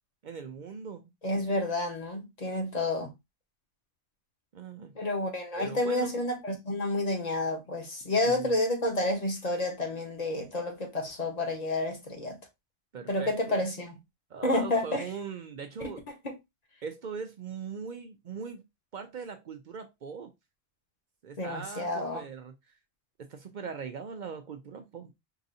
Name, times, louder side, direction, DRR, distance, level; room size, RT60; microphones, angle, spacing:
voice 1, 0.2-1.1 4.5-4.9 5.6-6.1 8.3-8.5 12.9-13.6 14.3-16.0 16.8-18.7 18.9-20.3 21.2-22.8 23.2-25.1, right 6 dB, 60° right, 0.5 m, -40 dB
voice 2, 1.2-3.1 4.9-12.4 13.1-14.0 14.4-15.1 15.8-15.9 16.2-16.3 21.4-22.2, left 2 dB, 40° left, 1.1 m, -30 dB
4.7 x 2.6 x 2.6 m
omnidirectional pair, 1.1 m